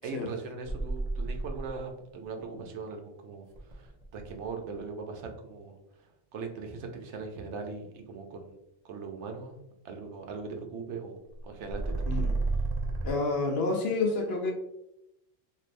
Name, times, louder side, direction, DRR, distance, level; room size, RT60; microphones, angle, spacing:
voice 1, 0.0-8.5 8.8-9.6 9.8-12.3, right 4 dB, 80° right, 4 dB, 0.9 m, -40 dB
sound 1, 0.6-1.9 3.5-4.5 11.4-13.1, right 3 dB, 45° right, 0.5 m, -31 dB
voice 2, 12.0-12.4 13.0-14.5, left 3 dB, 65° left, 2 dB, 0.8 m, -29 dB
3.1 x 2.6 x 2.5 m, 0.85 s
omnidirectional pair, 1.2 m